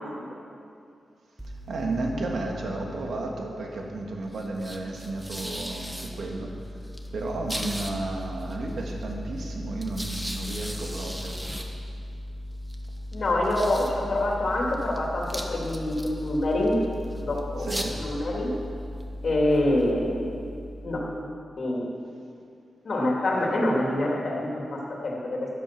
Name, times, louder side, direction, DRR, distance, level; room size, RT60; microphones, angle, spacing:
sound 1, 1.4-21.3, equal, 5° right, 1.1 m, -37 dB
voice 1, 1.7-6.8 7.1-11.4 17.6-18.0, right 2 dB, 70° right, 0 dB, 1.9 m, -33 dB
voice 2, 13.1-16.8 17.2-18.5 19.2-20.3 20.8-21.3 21.6-21.9 22.8-25.5, left 1 dB, 45° left, -2 dB, 2.5 m, -26 dB
13.0 x 11.0 x 6.1 m, 2.4 s
wide cardioid pair, 150°, 0 cm